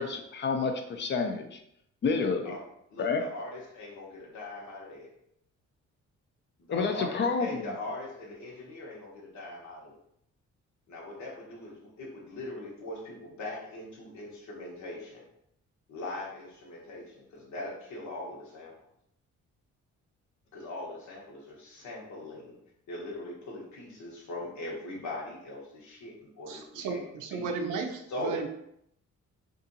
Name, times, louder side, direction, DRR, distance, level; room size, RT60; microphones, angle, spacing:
voice 1, 0.0-1.6 2.0-2.5 3.0-3.2 6.7-7.7, left 4 dB, 40° left, 5 dB, 0.5 m, -29 dB
voice 2, 2.9-5.1 6.6-10.0 10.9-15.2 15.9-18.7 20.5-22.6 22.9-27.0 27.3-27.5 28.1-28.3, left 2 dB, 70° left, -2 dB, 1.0 m, -41 dB
voice 3, 26.5-28.5, right 5 dB, 85° right, 4 dB, 0.5 m, -34 dB
2.7 x 2.5 x 2.6 m, 0.75 s
cardioid pair, 90°, 30 cm